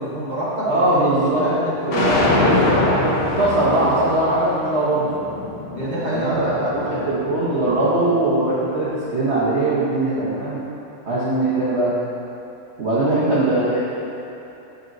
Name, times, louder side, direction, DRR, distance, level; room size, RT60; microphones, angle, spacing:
voice 1, 0.0-3.0 5.7-7.1 13.0-13.2, right 1 dB, 25° right, -8 dB, 1.2 m, -27 dB
voice 2, 0.6-1.5 1.9-2.5 3.0-5.0 6.1-10.6 11.0-11.9 12.8-13.8, right 2 dB, 50° right, -10 dB, 0.8 m, -21 dB
sound 1, 1.9-8.1, left 2 dB, 55° left, 1.2 m, -23 dB
12.0 x 4.4 x 2.7 m, 3.0 s
omnidirectional pair, 2.4 m